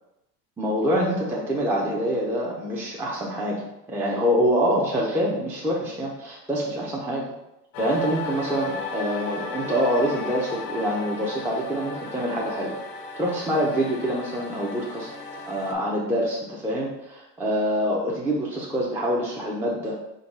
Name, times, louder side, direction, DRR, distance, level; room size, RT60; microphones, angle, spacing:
voice 1, 0.6-7.2 7.8-12.7 13.2-15.1 15.5-20.0, equal, 5° right, -4 dB, 0.4 m, -25 dB
sound 1, 7.7-15.7, left 4 dB, 70° left, 0.7 m, -35 dB
3.8 x 2.2 x 4.0 m, 0.91 s
hypercardioid pair, 100°, 47 cm